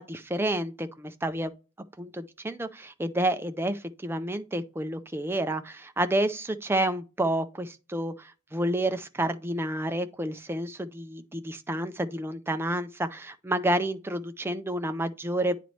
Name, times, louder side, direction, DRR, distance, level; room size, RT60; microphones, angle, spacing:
voice 1, 0.0-1.5 2.0-15.6, right 1 dB, 10° right, 0.4 m, -29 dB
9.2 x 4.0 x 3.1 m
head